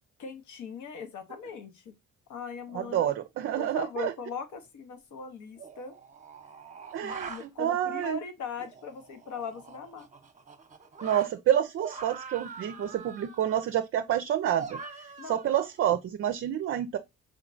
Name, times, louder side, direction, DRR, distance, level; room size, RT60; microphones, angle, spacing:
voice 1, 0.2-1.9 2.3-3.1 3.5-6.0 7.0-10.1 15.2-15.4, left 5 dB, 75° left, 1.0 m, -40 dB
voice 2, 2.7-4.1 6.9-8.2 11.0-14.8 15.3-17.0, right 11 dB, 45° right, 0.4 m, -28 dB
sound 1, 4.6-4.7 5.6-7.5 8.6-11.3 11.8-13.6 14.6-15.9, right 5 dB, 25° right, 0.8 m, -44 dB
5.0 x 3.0 x 2.5 m
cardioid pair, 90°, 30 cm